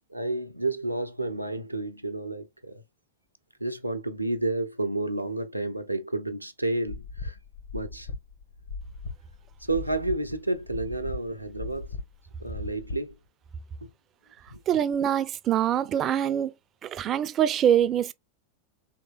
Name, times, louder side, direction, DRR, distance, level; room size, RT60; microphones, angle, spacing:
voice 1, 0.1-2.8 3.6-7.4 7.7-8.1 9.6-11.9 12.4-13.1 13.8-13.9 14.5-14.6, right 2 dB, 85° right, 0.5 m, -30 dB
sound 1, 6.9-13.1, left 4 dB, 70° left, 0.9 m, -38 dB
voice 2, 14.7-16.5 16.8-18.1, right 10 dB, 30° right, 0.4 m, -24 dB
4.2 x 3.3 x 2.2 m
figure-of-eight pair, 90°, 0 cm